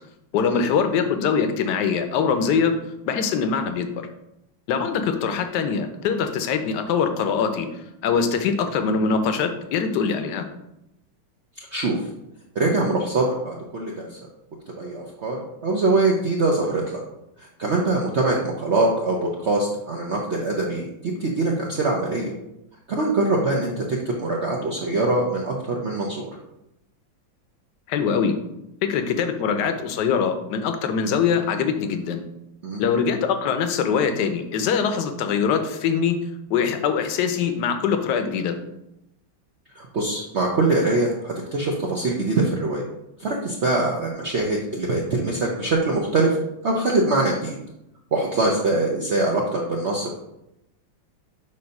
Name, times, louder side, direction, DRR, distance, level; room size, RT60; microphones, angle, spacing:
voice 1, 0.3-2.7 3.1-4.1 4.7-7.7 8.0-10.4 27.9-28.3 28.8-32.2 32.8-36.2 36.5-38.6, left 6 dB, 65° left, 7 dB, 1.2 m, -23 dB
voice 2, 11.7-12.1 12.5-14.2 14.8-15.4 15.6-17.0 17.4-22.3 22.9-26.3 32.6-32.8 39.7-42.9 43.2-46.4 46.6-47.6 48.1-50.1, right 2 dB, 60° right, -1 dB, 0.7 m, -23 dB
7.1 x 2.7 x 5.2 m, 0.86 s
omnidirectional pair, 2.2 m